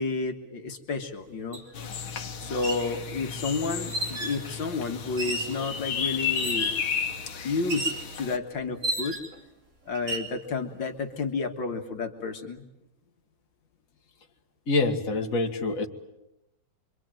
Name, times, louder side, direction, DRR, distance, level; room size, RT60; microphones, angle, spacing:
voice 1, 0.0-1.6 2.4-6.7 7.4-9.2 9.9-12.6, left 4 dB, 70° left, 4 dB, 2.3 m, -31 dB
sound 1, 1.5-1.6 2.5-2.9 3.9-4.4 5.2-5.6 6.3-6.8 7.7-8.1 8.8-9.4 9.9-10.3, right 1 dB, 35° right, 3.1 m, -32 dB
sound 2, 1.7-8.4, left 6 dB, 85° left, 2.1 m, -33 dB
voice 2, 14.7-15.9, left 3 dB, 45° left, 2 dB, 2.2 m, -26 dB
26.5 x 24.5 x 9.0 m, 0.91 s
omnidirectional pair, 2.2 m